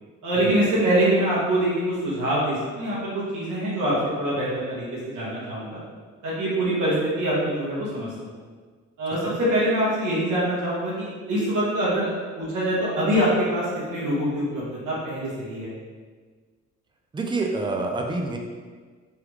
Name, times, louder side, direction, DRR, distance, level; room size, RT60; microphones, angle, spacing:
voice 1, 0.2-5.8 6.2-8.1 9.0-12.1 12.4-15.7, right 1 dB, 80° right, -8 dB, 1.3 m, -24 dB
voice 2, 17.1-18.4, right 3 dB, 15° right, 2 dB, 0.4 m, -27 dB
3.5 x 2.2 x 3.0 m, 1.5 s
cardioid pair, 90°, 30 cm